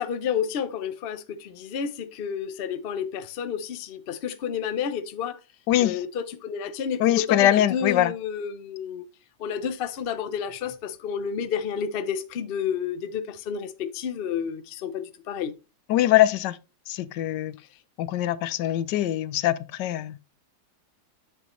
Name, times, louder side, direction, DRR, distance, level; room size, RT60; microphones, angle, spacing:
voice 1, 0.0-5.4 5.8-9.1 9.4-15.5, left 7 dB, 55° left, 0.7 m, -30 dB
voice 2, 7.0-8.1 15.9-16.6 16.9-17.5 18.0-20.2, left 13 dB, 90° left, 1.2 m, -22 dB
8.1 x 6.8 x 3.1 m
omnidirectional pair, 1.8 m